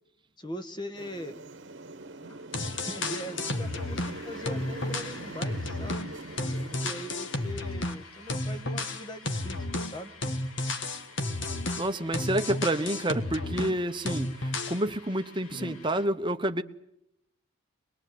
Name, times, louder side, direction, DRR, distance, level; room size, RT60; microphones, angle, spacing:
voice 1, 0.4-1.4 2.8-6.1 6.6-10.1 15.5-15.8, equal, 20° left, 1.4 m, -41 dB
sound 1, 0.9-7.5, right 2 dB, 50° right, 1.3 m, -43 dB
sound 2, 2.2-16.0, left 3 dB, 75° left, 2.7 m, -50 dB
sound 3, 2.3-2.4 2.5-4.2 4.5-8.0 8.3-13.8 14.1-14.8, left 2 dB, 55° left, 1.6 m, -32 dB
voice 2, 11.8-16.6, right 1 dB, 20° right, 1.0 m, -29 dB
24.0 x 20.5 x 9.4 m
head